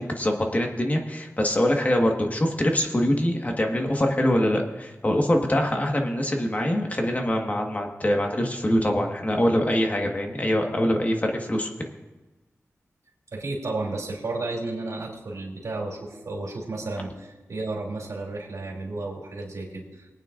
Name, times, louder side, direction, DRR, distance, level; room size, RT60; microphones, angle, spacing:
voice 1, 0.0-11.7, left 1 dB, 30° left, 2 dB, 1.5 m, -24 dB
voice 2, 13.3-20.1, right 2 dB, 80° right, -2 dB, 2.8 m, -32 dB
21.5 x 9.1 x 2.5 m, 1.1 s
wide cardioid pair, 80°, 5 cm